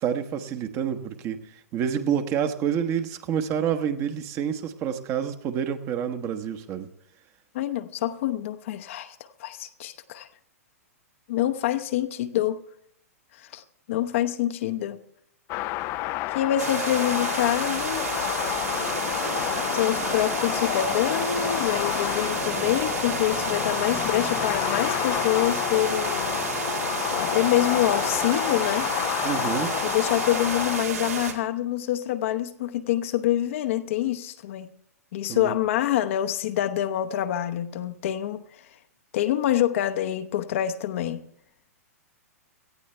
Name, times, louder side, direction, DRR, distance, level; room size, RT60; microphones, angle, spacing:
voice 1, 0.0-1.4 1.7-6.9 29.2-29.8 35.3-35.6, right 8 dB, 30° right, 1.1 m, -28 dB
voice 2, 7.5-10.3 11.3-12.6 13.3-13.6 13.9-15.0 16.3-18.1 19.7-26.4 27.1-28.9 29.8-34.7 35.1-38.4 39.1-41.2, left 12 dB, 55° left, 0.9 m, -26 dB
sound 1, 15.5-30.8, left 17 dB, 35° left, 0.5 m, -29 dB
sound 2, 16.6-31.3, right 6 dB, 75° right, 2.2 m, -31 dB
18.0 x 13.5 x 3.4 m
hypercardioid pair, 115°, 8 cm